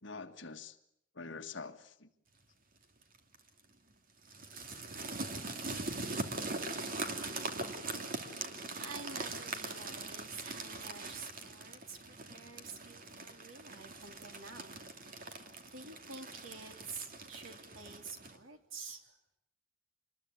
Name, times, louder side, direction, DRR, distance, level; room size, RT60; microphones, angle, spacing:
voice 1, 0.0-0.8 1.1-2.1 7.8-8.9, left 4 dB, 65° left, 7 dB, 1.7 m, -47 dB
sound 1, 3.0-3.4 4.2-18.4, right 3 dB, 45° right, 2.6 m, -42 dB
voice 2, 8.7-15.5 15.7-19.2, right 4 dB, 85° right, 5 dB, 3.4 m, -49 dB
26.5 x 21.0 x 9.7 m, 0.75 s
head